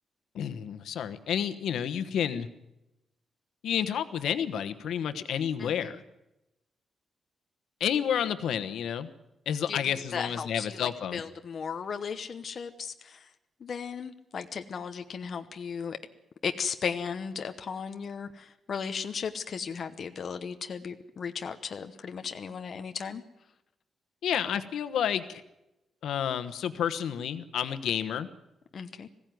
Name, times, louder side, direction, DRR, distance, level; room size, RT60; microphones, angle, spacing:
voice 1, 0.3-2.5 3.6-6.0 7.8-9.1 9.5-11.2 24.2-25.4 26.0-28.3, left 9 dB, 80° left, 11 dB, 1.2 m, -30 dB
voice 2, 5.6-6.0 9.7-13.3 13.6-16.0 16.4-23.2 28.7-29.1, left 6 dB, 40° left, 7 dB, 0.9 m, -36 dB
20.5 x 16.0 x 9.4 m, 0.92 s
wide cardioid pair, 180°, 0 cm